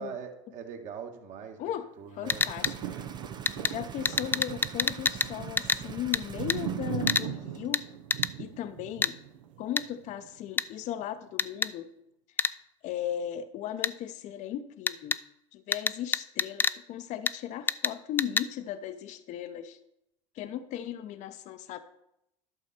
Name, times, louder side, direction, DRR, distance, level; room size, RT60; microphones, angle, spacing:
voice 1, 0.0-1.6 2.0-2.5, right 7 dB, 50° right, 3 dB, 1.7 m, -41 dB
voice 2, 2.2-3.0 3.7-7.8 8.4-9.2 9.6-11.9 12.4-12.6 12.8-15.2 15.5-19.8 20.3-21.8, left 10 dB, 50° left, 11 dB, 0.7 m, -37 dB
sound 1, 2.2-7.2 7.5-7.7, right 7 dB, 25° right, 0.7 m, -44 dB
sound 2, 2.2-10.5 11.0-11.1, right 9 dB, 85° right, 0.7 m, -39 dB
sound 3, 2.3-2.7 3.5-3.7 4.0-5.3 5.6-5.8 6.1-6.2 6.5-6.6 7.1-7.3 7.7-7.8 8.1-8.3 9.0-9.1 9.8-9.9 10.6-10.7 11.4-11.7 12.4-12.5 13.8-13.9 14.9-15.2 15.7-16.8 17.3-17.4 17.7-17.9 18.2-18.5, left 4 dB, 10° left, 0.3 m, -27 dB
11.5 x 6.3 x 4.3 m, 0.81 s
hypercardioid pair, 90°, 16 cm